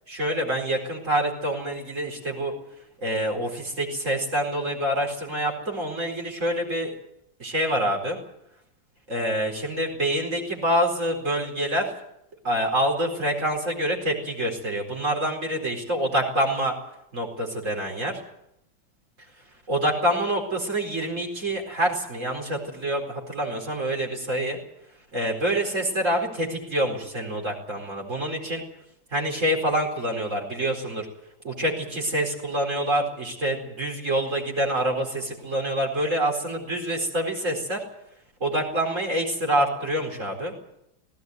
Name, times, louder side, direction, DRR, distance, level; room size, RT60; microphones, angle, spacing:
voice 1, 0.1-2.5 3.0-6.9 7.4-8.2 9.1-11.9 12.4-16.7 17.1-18.2 19.7-24.6 25.1-28.6 29.1-31.1 31.4-37.8 38.4-40.5, right 1 dB, 35° right, 1 dB, 4.8 m, -26 dB
18.5 x 17.5 x 9.5 m, 0.79 s
omnidirectional pair, 2.2 m